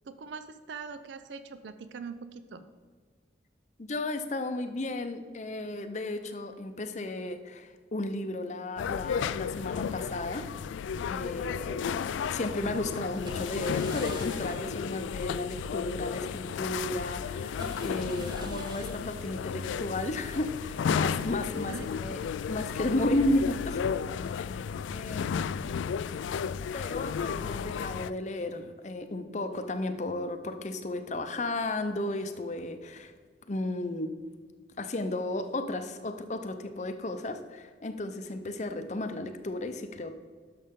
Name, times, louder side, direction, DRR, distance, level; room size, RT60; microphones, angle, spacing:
voice 1, 0.1-2.6 21.6-21.9, right 5 dB, 80° right, 11 dB, 0.5 m, -42 dB
voice 2, 3.8-10.8 11.0-12.0 12.3-22.2 22.5-24.0 24.4-24.7 24.9-25.9 26.7-33.1 33.5-34.1 34.8-40.1, left 2 dB, 40° left, 8 dB, 0.6 m, -34 dB
sound 1, 8.8-28.1, left 7 dB, 90° left, 0.3 m, -33 dB
sound 2, 10.8-11.5 13.2-15.0 15.3-15.4 15.9-16.0 16.7-16.8 17.5-20.7 21.0-21.4, right 1 dB, 25° right, 0.9 m, -48 dB
11.0 x 6.6 x 3.7 m, 1.5 s
head